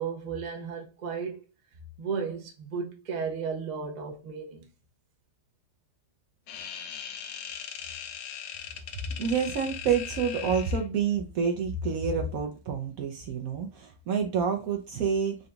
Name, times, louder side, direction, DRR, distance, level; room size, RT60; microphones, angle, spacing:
voice 1, 0.0-1.4 2.0-4.7, right 6 dB, 50° right, 0.5 m, -34 dB
sound 1, 6.5-10.9, left 8 dB, 75° left, 1.1 m, -39 dB
voice 2, 9.0-15.4, right 6 dB, 65° right, 0.9 m, -28 dB
3.9 x 2.3 x 3.8 m
omnidirectional pair, 2.0 m